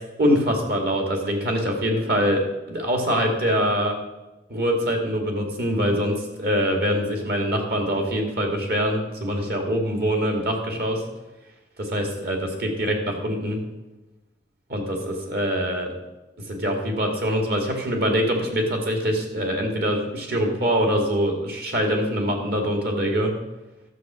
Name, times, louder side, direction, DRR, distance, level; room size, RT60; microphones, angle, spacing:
voice 1, 0.2-4.0 4.5-11.0 11.8-13.6 14.7-15.9 16.5-23.3, equal, 60° right, 2 dB, 2.2 m, -24 dB
12.5 x 7.1 x 6.1 m, 1.0 s
head